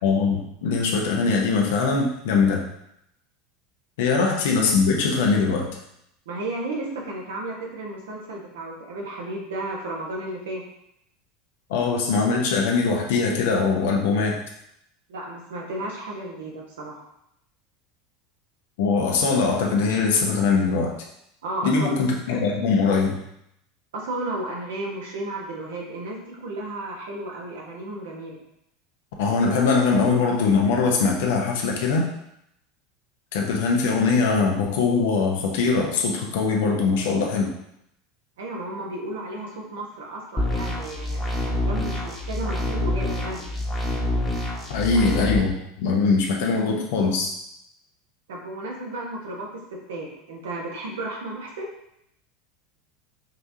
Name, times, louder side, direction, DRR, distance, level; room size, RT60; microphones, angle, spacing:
voice 1, 0.0-2.6 4.0-5.8 11.7-14.4 18.8-20.9 21.6-23.2 29.2-32.1 33.3-37.5 44.7-47.3, left 4 dB, 65° left, 0 dB, 0.9 m, -22 dB
voice 2, 6.2-10.6 15.1-17.1 21.4-22.5 23.9-28.4 38.4-43.5 48.3-49.6 49.9-51.7, right 2 dB, 70° right, -1 dB, 1.2 m, -33 dB
sound 1, 40.4-45.4, left 1 dB, 20° left, 1.2 m, -27 dB
5.2 x 3.4 x 2.8 m, 0.78 s
figure-of-eight pair, 80°, 0 cm